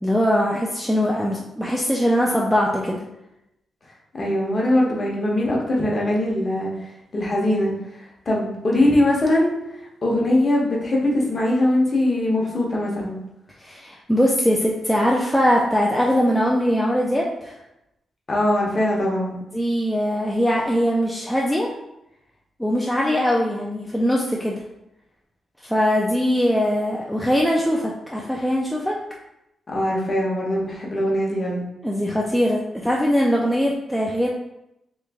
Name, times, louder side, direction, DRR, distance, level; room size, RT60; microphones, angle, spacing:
voice 1, 0.0-3.0 13.6-17.5 19.5-21.7 22.6-24.6 25.6-29.0 31.8-34.3, equal, 5° left, -3 dB, 0.4 m, -21 dB
voice 2, 4.1-6.7 7.1-9.6 10.0-13.2 18.3-19.4 29.7-31.6, left 1 dB, 35° left, -3 dB, 0.9 m, -21 dB
3.1 x 2.4 x 3.5 m, 0.85 s
wide cardioid pair, 135°, 0 cm